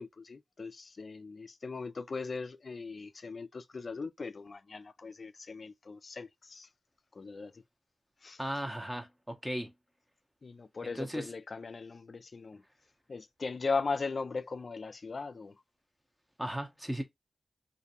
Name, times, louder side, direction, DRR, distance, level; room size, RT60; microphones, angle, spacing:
voice 1, 0.0-6.7 7.1-7.5 8.2-8.4 10.4-12.6 13.1-15.5, left 4 dB, 55° left, 0.3 m, -38 dB
voice 2, 8.4-9.7 10.9-11.3 16.4-17.0, equal, 10° right, 0.7 m, -36 dB
2.5 x 2.2 x 2.7 m
cardioid pair, 45°, 0 cm